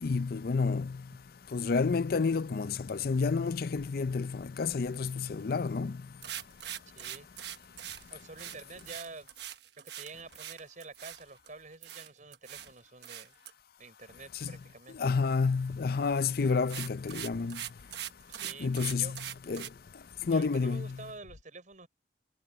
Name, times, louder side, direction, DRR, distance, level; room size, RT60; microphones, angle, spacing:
voice 1, 0.0-1.0 1.5-6.0 14.4-14.5 15.0-17.6 18.6-19.2 19.5-19.6 20.3-21.0, left 4 dB, 60° left, 0.5 m, -29 dB
sound 1, 6.2-11.5 11.8-12.7 13.0-13.5 16.0-16.2 16.5-19.7, right 11 dB, 70° right, 1.2 m, -42 dB
voice 2, 6.9-7.3 8.1-9.3 9.8-13.3 13.8-15.0 18.3-19.2 20.2-21.9, right 3 dB, 45° right, 5.3 m, -48 dB
head